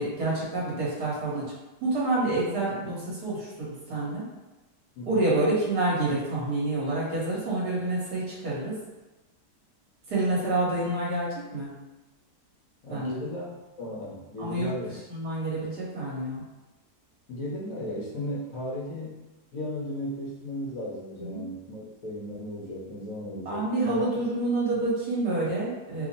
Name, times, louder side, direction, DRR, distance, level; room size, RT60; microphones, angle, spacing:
voice 1, 0.0-1.5 1.8-4.2 5.1-8.8 10.1-11.7 12.9-13.2 14.4-14.7 15.1-16.4 21.2-21.4 23.4-26.1, right 2 dB, 70° right, -6 dB, 1.7 m, -28 dB
voice 2, 12.8-13.5 13.8-14.9 17.3-19.2 19.5-24.0, left 1 dB, 60° left, -5 dB, 1.2 m, -35 dB
3.5 x 2.1 x 4.0 m, 1.1 s
omnidirectional pair, 1.8 m